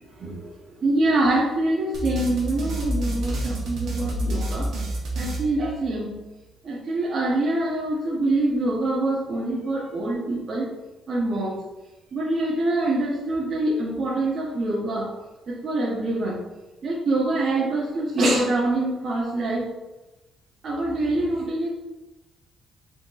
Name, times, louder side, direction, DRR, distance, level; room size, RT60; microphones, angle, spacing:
voice 1, 0.2-0.5 0.8-4.7 5.2-6.1 6.6-10.7 11.1-11.6 12.1-15.1 15.5-16.4 16.8-19.7 20.6-21.7, right 2 dB, 50° right, -6 dB, 1.0 m, -25 dB
sound 1, 1.9-6.2, right 1 dB, 75° right, 1.1 m, -29 dB
4.3 x 4.1 x 2.5 m, 1.1 s
cardioid pair, 90°, 0 cm